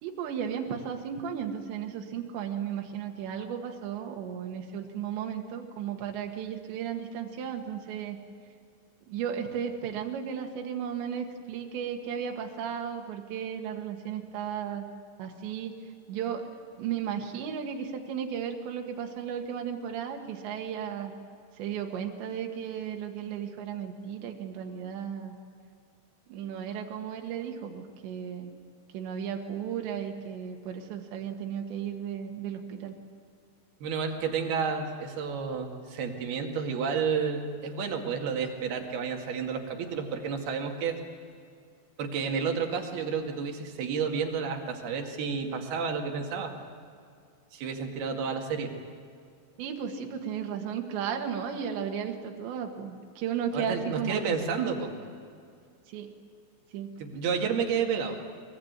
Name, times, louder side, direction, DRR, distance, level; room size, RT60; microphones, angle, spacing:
voice 1, 0.0-8.2 9.1-14.9 15.2-15.8 16.1-16.5 16.8-21.1 21.6-25.3 26.3-28.5 28.9-32.9 49.6-54.2 55.9-56.2 56.7-56.9, right 8 dB, 80° right, 3 dB, 4.0 m, -35 dB
voice 2, 33.8-41.0 42.0-46.5 47.5-48.7 53.5-54.9 57.0-58.2, right 6 dB, 65° right, 3 dB, 4.0 m, -31 dB
23.0 x 22.5 x 9.6 m, 2.3 s
omnidirectional pair, 5.1 m